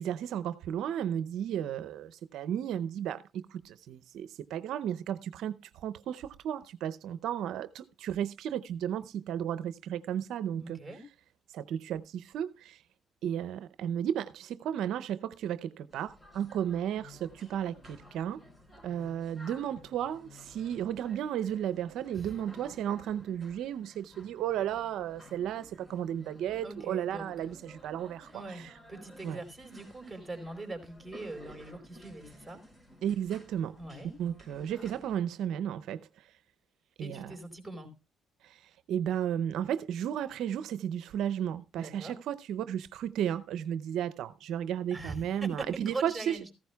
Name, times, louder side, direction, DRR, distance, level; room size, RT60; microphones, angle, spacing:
voice 1, 0.0-10.8 11.5-12.8 13.2-18.4 18.8-28.7 29.2-29.4 33.0-33.8 34.2-36.3 37.0-37.3 38.4-46.4, right 10 dB, 80° right, 0.6 m, -34 dB
voice 2, 10.6-11.0 22.1-22.4 26.6-27.3 28.3-32.6 33.8-34.1 37.0-37.9 41.7-42.2 44.9-46.5, right 2 dB, 10° right, 4.4 m, -42 dB
sound 1, 15.9-35.2, equal, 20° left, 5.6 m, -55 dB
15.0 x 14.0 x 2.3 m
supercardioid pair, 70°, 0 cm